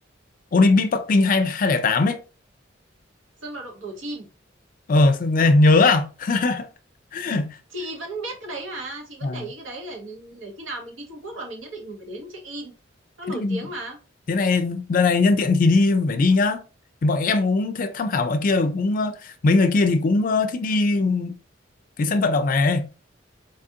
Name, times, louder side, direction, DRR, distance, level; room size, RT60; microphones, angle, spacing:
voice 1, 0.5-2.2 4.9-6.7 7.1-7.6 9.2-9.5 13.3-13.6 14.3-16.6 17.0-21.4 22.0-22.9, left 3 dB, 45° left, 0.4 m, -20 dB
voice 2, 3.4-4.3 7.7-12.7 13.2-14.0, right 1 dB, 90° right, 1.1 m, -35 dB
4.0 x 2.5 x 2.7 m
head